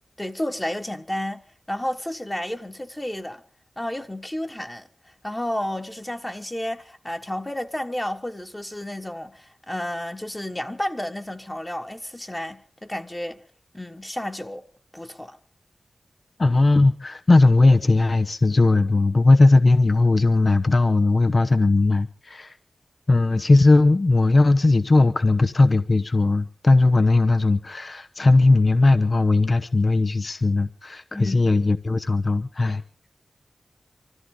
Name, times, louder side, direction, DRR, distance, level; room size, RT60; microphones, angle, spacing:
voice 1, 0.2-3.4 3.8-4.9 5.2-13.4 13.7-14.6 14.9-15.4 31.1-31.5, left 1 dB, 20° left, 1.5 m, -31 dB
voice 2, 16.4-22.5 23.1-32.8, left 2 dB, 50° left, 0.9 m, -18 dB
24.5 x 14.5 x 3.9 m
cardioid pair, 50°, 0 cm